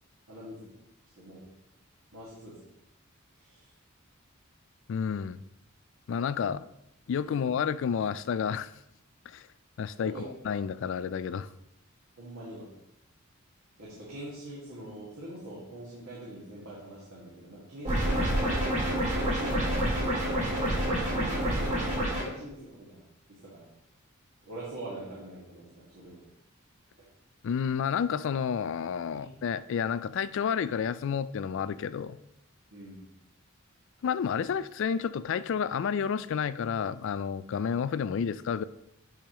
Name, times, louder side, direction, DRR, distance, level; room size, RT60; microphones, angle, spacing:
voice 1, 0.3-0.7 1.2-1.4 2.1-2.6 3.4-3.7 7.3-7.4 10.0-10.2 12.2-12.7 13.8-18.7 19.2-20.1 20.6-23.7 24.4-26.2 29.1-29.3 32.7-33.0, right 1 dB, 75° right, -8 dB, 2.0 m, -44 dB
voice 2, 4.9-5.4 6.1-6.7 7.1-8.7 9.3-9.5 9.8-10.1 10.4-11.5 27.4-32.2 34.0-38.6, left 7 dB, 60° left, 16 dB, 0.3 m, -30 dB
sound 1, 17.8-22.2, right 1 dB, 35° right, 2.2 m, -28 dB
10.0 x 5.0 x 3.0 m, 0.84 s
head